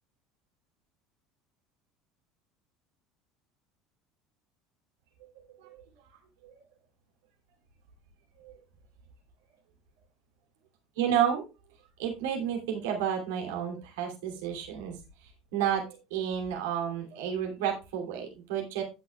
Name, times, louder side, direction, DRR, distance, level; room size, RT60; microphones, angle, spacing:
voice 1, 5.2-5.8 6.4-6.5 8.4-8.6 11.0-11.4 12.0-15.0 15.5-18.8, right 9 dB, 70° right, 2 dB, 2.8 m, -31 dB
16.0 x 6.2 x 2.3 m, 0.28 s
hypercardioid pair, 70°, 0 cm